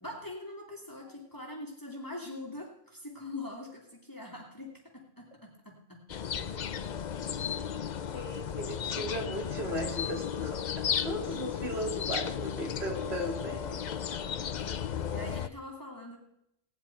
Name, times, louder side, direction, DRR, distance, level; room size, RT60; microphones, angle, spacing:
voice 1, 0.0-6.0 14.6-16.2, left 2 dB, 20° left, -2 dB, 2.4 m, -43 dB
sound 1, 6.1-15.5, left 8 dB, 50° left, 0.6 m, -34 dB
voice 2, 8.1-13.8, equal, 75° right, 0 dB, 2.8 m, -37 dB
18.0 x 10.0 x 4.5 m, 0.79 s
omnidirectional pair, 1.1 m